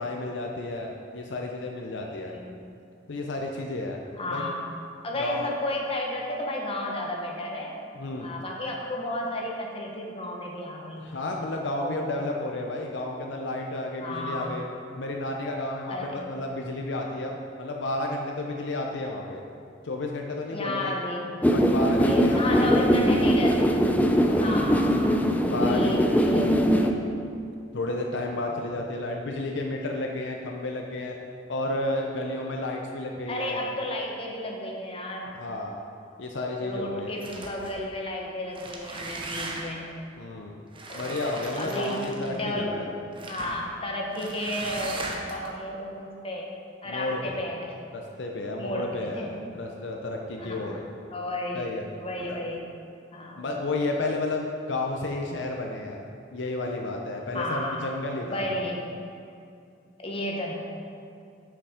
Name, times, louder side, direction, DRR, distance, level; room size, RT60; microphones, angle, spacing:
voice 1, 0.0-2.3 3.1-4.0 4.3-4.5 5.1-5.5 7.9-8.3 11.0-14.6 15.0-19.4 19.8-20.9 21.5-23.0 24.2-24.5 25.5-26.2 27.7-31.1 31.5-33.6 35.2-35.8 36.2-37.2 40.2-40.6 40.9-42.9 46.8-47.4 47.9-50.8 51.5-51.9 52.2-52.5 53.4-56.0 56.3-58.5, left 2 dB, 70° left, 1 dB, 0.6 m, -32 dB
voice 2, 1.9-2.5 4.2-4.6 5.0-7.7 8.2-11.2 11.8-12.2 14.0-14.5 15.9-16.2 20.5-21.3 22.0-23.7 24.4-25.2 25.6-26.9 33.3-35.4 36.6-39.9 40.9-41.2 41.5-42.9 43.3-46.5 46.8-47.7 48.6-49.4 50.4-50.8 51.1-52.6 53.1-53.4 57.3-57.8 58.2-58.8 60.0-60.5, left 1 dB, 30° left, -1 dB, 1.0 m, -32 dB
sound 1, 21.4-26.9, equal, 10° left, 0.4 m, -21 dB
sound 2, 37.2-37.8 38.4-39.9 40.7-42.5 43.1-43.6 44.1-45.5, right 2 dB, 30° right, 0.8 m, -38 dB
7.1 x 5.8 x 5.0 m, 2.4 s
head